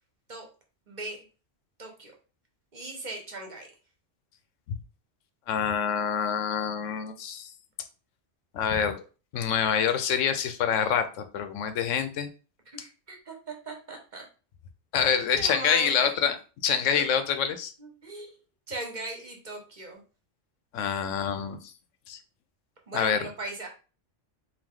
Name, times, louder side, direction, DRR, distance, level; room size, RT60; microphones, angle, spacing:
voice 1, 0.9-1.2 1.8-2.1 2.7-3.7 12.7-14.3 15.1-16.1 16.9-17.0 17.8-18.4 18.7-20.0 22.9-23.7, right 2 dB, 45° right, 2 dB, 0.9 m, -38 dB
voice 2, 5.5-7.5 8.5-9.0 9.3-12.3 14.9-16.4 16.6-17.7 20.7-21.7 22.1-22.2 22.9-23.3, left 7 dB, 90° left, 9 dB, 1.0 m, -26 dB
4.7 x 2.5 x 3.7 m, 0.35 s
omnidirectional pair, 1.2 m